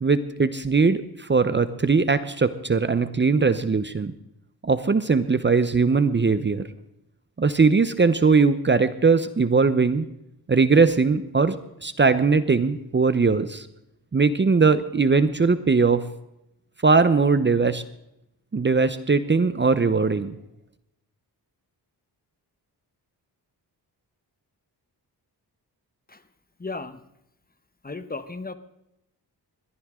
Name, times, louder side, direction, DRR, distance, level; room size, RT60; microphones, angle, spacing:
voice 1, 0.0-4.1 4.6-6.6 7.4-10.1 10.5-11.5 11.8-13.7 14.1-16.1 16.8-17.8 18.5-20.3, right 4 dB, 25° right, 12 dB, 0.8 m, -20 dB
voice 2, 26.6-27.0 27.8-28.5, left 3 dB, 20° left, 11 dB, 1.0 m, -34 dB
21.5 x 14.5 x 3.7 m, 0.85 s
cardioid pair, 90°, 40 cm